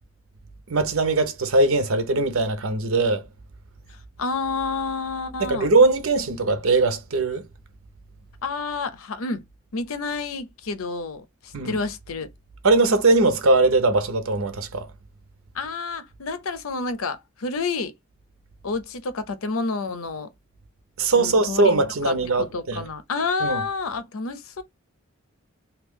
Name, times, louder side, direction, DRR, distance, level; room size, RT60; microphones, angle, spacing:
voice 1, 0.7-3.2 5.4-7.4 11.5-11.8 12.6-14.9 21.0-22.8 23.4-23.6, right 3 dB, 85° right, 0.8 m, -20 dB
voice 2, 3.9-5.7 8.4-9.4 9.7-12.3 15.5-17.9 18.6-20.3 21.1-21.7 22.0-24.6, left 4 dB, 85° left, 0.6 m, -29 dB
2.9 x 2.3 x 3.6 m
head